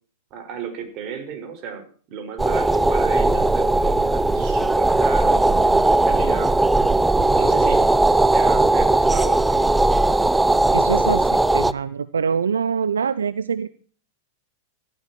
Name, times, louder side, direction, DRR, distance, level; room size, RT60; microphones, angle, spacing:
voice 1, 0.3-6.5 7.4-7.8 8.3-9.8, right 7 dB, 40° right, 6 dB, 5.4 m, -34 dB
sound 1, 2.4-11.7, right 2 dB, 5° right, 0.7 m, -18 dB
voice 2, 10.7-13.7, right 6 dB, 80° right, 16 dB, 0.7 m, -24 dB
16.5 x 14.0 x 4.4 m, 0.43 s
figure-of-eight pair, 95°, 0 cm